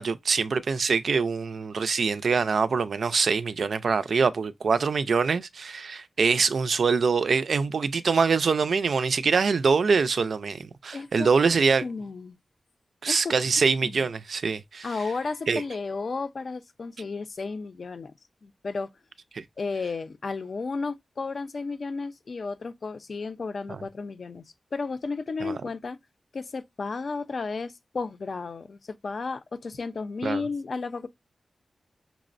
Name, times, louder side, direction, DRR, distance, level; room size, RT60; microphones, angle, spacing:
voice 1, 0.0-11.8 13.0-14.9 15.5-15.6 19.3-19.4 25.4-25.6 30.2-30.4, right 5 dB, 80° right, 0.3 m, -24 dB
voice 2, 10.9-11.5 11.8-12.4 13.1-13.3 13.8-14.1 14.8-18.1 18.4-18.9 19.6-24.4 24.7-26.0 26.3-31.1, left 4 dB, 60° left, 0.5 m, -33 dB
5.7 x 2.0 x 2.5 m
wide cardioid pair, 100°, 0 cm